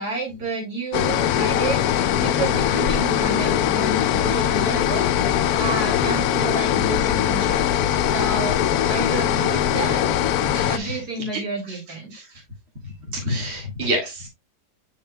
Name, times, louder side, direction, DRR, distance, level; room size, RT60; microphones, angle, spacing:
voice 1, 0.0-10.0 10.7-12.1, right 3 dB, 70° right, -1 dB, 3.1 m, -30 dB
sound 1, 0.9-10.8, left 10 dB, 70° left, 1.0 m, -21 dB
voice 2, 10.5-11.4 11.7-11.8 12.1-12.3 13.1-14.3, equal, 40° right, 0 dB, 2.1 m, -28 dB
7.8 x 5.6 x 2.2 m, 0.21 s
omnidirectional pair, 1.8 m